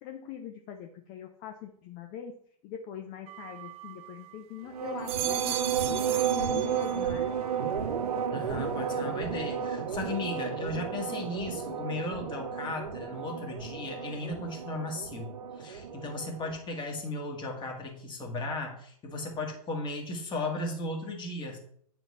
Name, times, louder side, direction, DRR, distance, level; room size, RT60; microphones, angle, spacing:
voice 1, 0.0-2.4 2.6-7.3, left 9 dB, 40° left, 5 dB, 0.8 m, -42 dB
sound 1, 3.3-4.4 4.9-7.3 7.6-8.2, right 13 dB, 30° right, 0.5 m, -37 dB
sound 2, 4.7-16.6, right 7 dB, 90° right, 0.8 m, -33 dB
voice 2, 8.3-21.6, left 2 dB, 25° left, 1 dB, 2.0 m, -36 dB
9.1 x 4.4 x 4.2 m, 0.64 s
hypercardioid pair, 110°, 19 cm